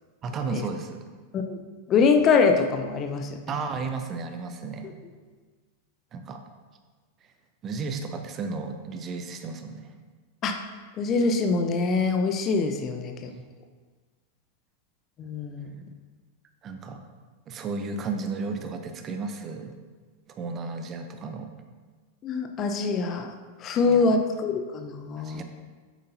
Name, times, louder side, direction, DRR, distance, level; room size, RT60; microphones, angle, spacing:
voice 1, 0.2-1.1 3.5-5.1 6.1-6.4 7.6-10.0 13.3-13.4 16.6-17.0 17.5-19.8 20.4-21.5 23.8-24.1 25.2-25.4, right 4 dB, 30° right, 6 dB, 0.8 m, -33 dB
voice 2, 1.9-3.3 10.4-10.6 11.0-13.3 15.2-15.7 22.2-23.3 23.6-25.4, left 4 dB, 30° left, 5 dB, 0.7 m, -24 dB
9.2 x 7.7 x 2.8 m, 1.4 s
figure-of-eight pair, 90°, 0 cm